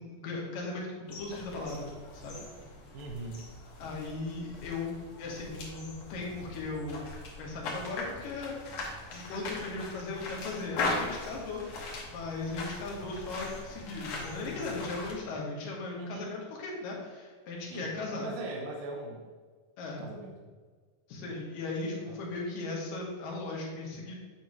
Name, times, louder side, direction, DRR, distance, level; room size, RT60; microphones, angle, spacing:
voice 1, 0.0-1.9 2.2-2.4 3.8-4.9 5.2-7.0 7.4-8.5 8.9-11.6 12.1-18.3 19.8-20.1 21.1-24.1, left 3 dB, 75° left, -2 dB, 2.9 m, -37 dB
sound 1, 1.1-15.1, left 3 dB, 60° left, 1.9 m, -40 dB
voice 2, 2.9-3.5 16.0-16.4 17.7-17.9 18.2-19.3 20.0-20.3 22.1-22.2, right 2 dB, 85° right, 0 dB, 2.5 m, -40 dB
8.4 x 3.0 x 5.3 m, 1.5 s
omnidirectional pair, 4.0 m